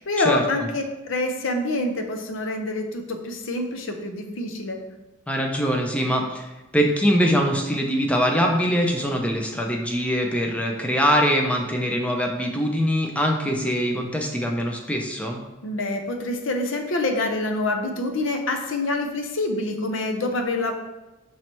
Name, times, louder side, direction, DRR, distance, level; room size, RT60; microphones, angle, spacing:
voice 1, 0.0-4.8 15.6-20.7, left 2 dB, 70° left, 5 dB, 0.6 m, -26 dB
voice 2, 5.3-15.4, equal, 5° left, 1 dB, 0.5 m, -23 dB
5.5 x 3.1 x 3.0 m, 1.0 s
head